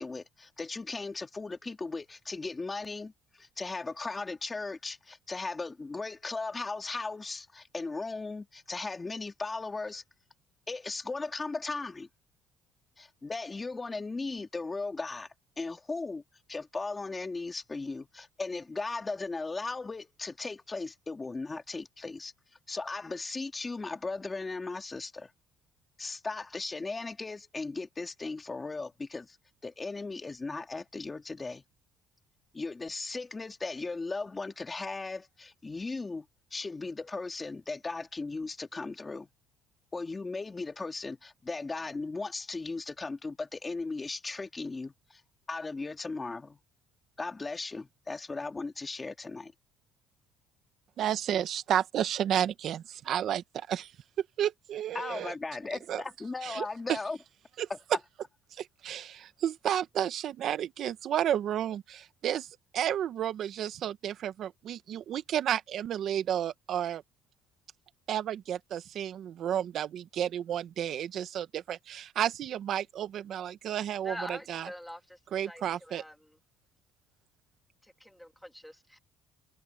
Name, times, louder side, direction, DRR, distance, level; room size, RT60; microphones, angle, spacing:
voice 1, 0.0-10.0 10.7-12.1 13.0-15.3 15.6-16.2 16.5-22.3 22.7-25.3 26.0-29.4 29.6-31.6 32.5-39.3 39.9-45.2 45.5-46.6 47.2-49.5 54.9-57.2 57.7-57.8, left 3 dB, 20° left, 2.2 m, -37 dB
voice 2, 51.0-53.9 54.4-55.3 55.9-56.0 56.4-57.0 57.6-57.7 58.6-67.0 68.1-74.7 75.3-76.0, right 10 dB, 55° right, 1.4 m, -32 dB
voice 3, 74.0-75.2 75.5-76.1 77.8-79.0, equal, ahead, 1.8 m, -44 dB
cardioid pair, 125°, 0 cm